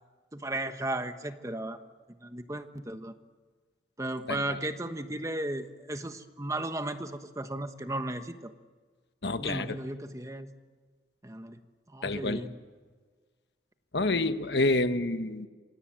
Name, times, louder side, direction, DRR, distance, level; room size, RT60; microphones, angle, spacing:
voice 1, 0.3-1.8 2.2-3.1 4.0-8.5 9.4-10.5 11.2-11.6 11.9-12.6, right 1 dB, 15° right, 1.2 m, -35 dB
voice 2, 9.2-9.8 12.0-12.4 13.9-15.5, left 2 dB, 70° left, 1.3 m, -28 dB
27.5 x 26.0 x 7.7 m
head